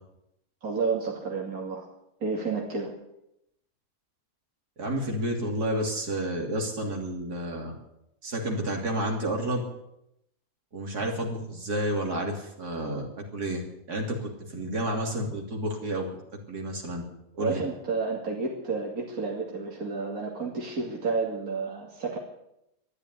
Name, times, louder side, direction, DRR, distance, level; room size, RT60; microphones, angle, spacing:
voice 1, 0.6-1.8 2.2-2.9 17.4-22.2, right 4 dB, 70° right, -2 dB, 3.0 m, -30 dB
voice 2, 4.8-7.7 8.2-9.6 10.7-13.6 13.9-16.1 16.5-17.0 17.4-17.6, right 1 dB, 85° right, 0 dB, 3.6 m, -30 dB
13.5 x 10.5 x 9.7 m, 0.83 s
omnidirectional pair, 1.6 m